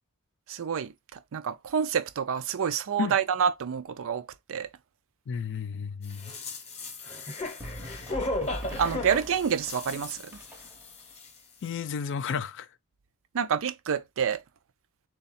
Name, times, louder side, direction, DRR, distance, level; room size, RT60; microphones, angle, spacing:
voice 1, 0.5-0.9 1.3-4.7 8.8-10.2 13.3-14.4, right 7 dB, 65° right, 0.5 m, -28 dB
voice 2, 5.3-6.3 7.9-8.0 11.6-12.7, left 6 dB, 55° left, 0.4 m, -32 dB
sound 1, 6.1-10.9 11.2-11.3, left 2 dB, 30° left, 0.9 m, -36 dB
sound 2, 7.6-11.1, equal, 10° right, 0.7 m, -42 dB
3.8 x 2.3 x 4.1 m
head